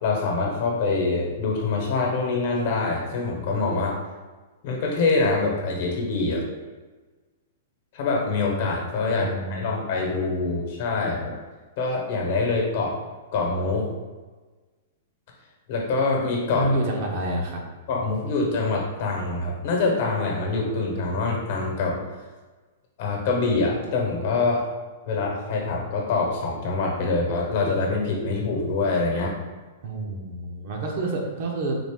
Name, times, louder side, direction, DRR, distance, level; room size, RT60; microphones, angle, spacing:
voice 1, 0.0-4.0 4.6-6.5 7.9-11.3 11.8-13.0 13.3-13.9 15.7-16.7 17.9-22.1 23.0-24.7 25.1-29.3, left 3 dB, 55° left, 0 dB, 1.0 m, -25 dB
voice 2, 9.1-10.0 16.5-17.6 29.8-31.8, right 2 dB, 50° right, 0 dB, 0.8 m, -28 dB
3.9 x 2.6 x 3.6 m, 1.3 s
hypercardioid pair, 150°, 0 cm